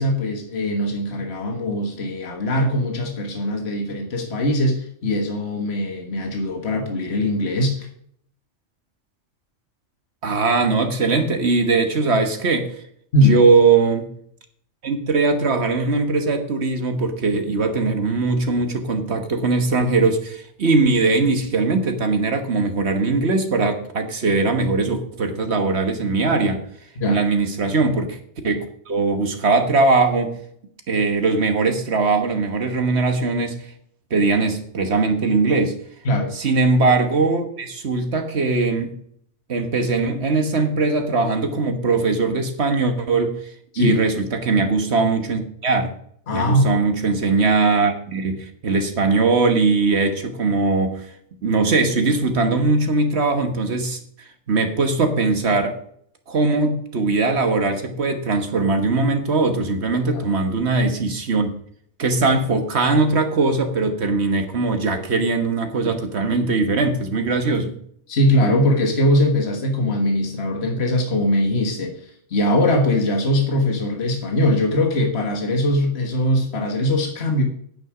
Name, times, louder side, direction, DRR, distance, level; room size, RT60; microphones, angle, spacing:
voice 1, 0.0-7.9 13.1-13.4 27.0-27.2 36.1-36.3 43.7-44.0 46.3-46.7 60.1-60.2 68.1-77.4, left 1 dB, 55° left, 2 dB, 1.7 m, -21 dB
voice 2, 10.2-12.7 13.2-14.1 14.8-26.6 27.1-28.2 28.4-30.3 30.9-33.5 34.1-35.8 36.3-38.9 39.5-43.4 43.8-45.9 46.3-51.1 51.4-54.0 54.5-55.7 56.3-61.5 62.0-67.7, right 3 dB, 60° right, 6 dB, 1.6 m, -20 dB
9.6 x 9.1 x 5.0 m, 0.65 s
omnidirectional pair, 1.3 m